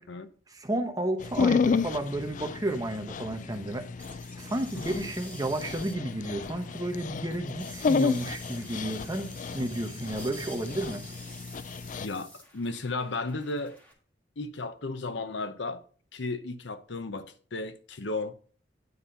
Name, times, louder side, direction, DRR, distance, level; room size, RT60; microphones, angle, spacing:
voice 1, 0.5-3.8 4.4-11.0, right 1 dB, 20° right, 1.0 m, -32 dB
Dog, 1.2-12.1, left 5 dB, 45° left, 0.3 m, -31 dB
sound 1, 4.0-13.9, equal, 10° left, 1.8 m, -49 dB
voice 2, 12.0-13.8 14.4-15.8 16.1-18.3, left 3 dB, 75° left, 0.8 m, -34 dB
9.6 x 4.3 x 5.2 m
head